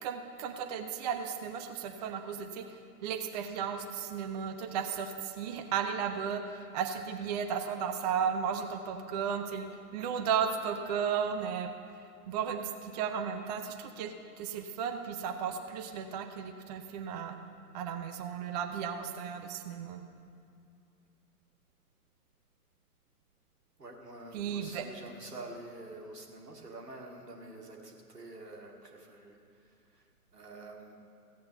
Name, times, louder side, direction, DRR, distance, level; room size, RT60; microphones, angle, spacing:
voice 1, 0.0-11.7 12.3-17.4 17.7-20.0 24.3-24.9, right 7 dB, 25° right, 7 dB, 0.5 m, -34 dB
voice 2, 23.8-30.9, right 2 dB, 85° right, 0 dB, 2.2 m, -48 dB
15.0 x 8.5 x 6.8 m, 2.5 s
figure-of-eight pair, 115°, 46 cm